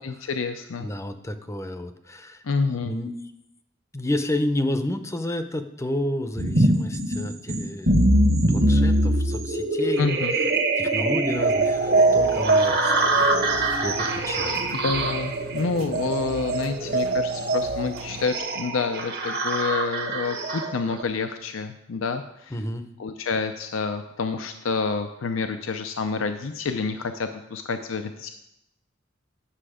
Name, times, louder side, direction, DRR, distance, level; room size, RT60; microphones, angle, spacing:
voice 1, 0.0-0.9 2.4-2.9 10.0-10.3 14.8-22.6 23.0-28.3, left 4 dB, 85° left, 8 dB, 0.5 m, -28 dB
voice 2, 0.8-2.4 2.8-3.1 3.9-8.0 8.5-10.0 10.4-10.5 10.8-14.8 17.3-17.5 22.5-22.9, left 1 dB, 15° left, 9 dB, 0.6 m, -31 dB
sound 1, 6.4-21.0, right 2 dB, 55° right, 1.3 m, -23 dB
sound 2, 11.3-18.3, right 3 dB, 75° right, 0.7 m, -40 dB
10.0 x 6.7 x 4.9 m, 0.84 s
head